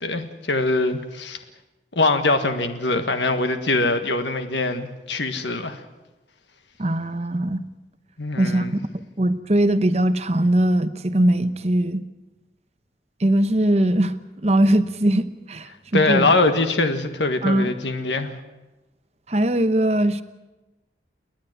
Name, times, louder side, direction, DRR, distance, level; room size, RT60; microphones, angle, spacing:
voice 1, 0.0-1.4 1.9-5.8 8.2-8.7 15.9-18.3, left 2 dB, 90° left, 8 dB, 1.6 m, -22 dB
voice 2, 6.8-7.6 8.4-8.6 9.2-12.0 13.2-14.1 14.4-16.3 17.4-17.7 19.3-20.2, right 1 dB, 35° right, 12 dB, 0.9 m, -20 dB
29.5 x 10.5 x 9.2 m, 1.1 s
head